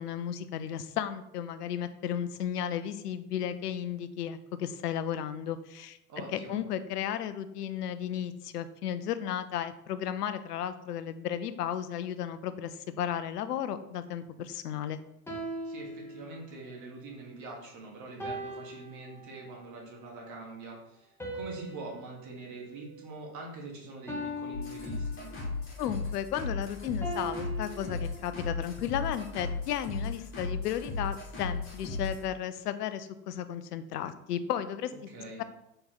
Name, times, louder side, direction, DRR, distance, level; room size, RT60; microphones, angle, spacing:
voice 1, 0.0-6.0 6.3-15.0 25.8-34.9 35.4-35.5, left 9 dB, 80° left, 12 dB, 0.6 m, -34 dB
voice 2, 6.1-6.6 15.6-25.3 35.1-35.4, right 3 dB, 40° right, -1 dB, 1.5 m, -44 dB
sound 1, 15.3-16.6 18.2-19.6 21.2-23.5 24.1-25.6 27.0-28.6, equal, 5° left, 1.1 m, -41 dB
sound 2, 24.5-32.2, left 3 dB, 25° left, 1.7 m, -36 dB
4.2 x 3.3 x 3.8 m, 0.83 s
hypercardioid pair, 85°, 47 cm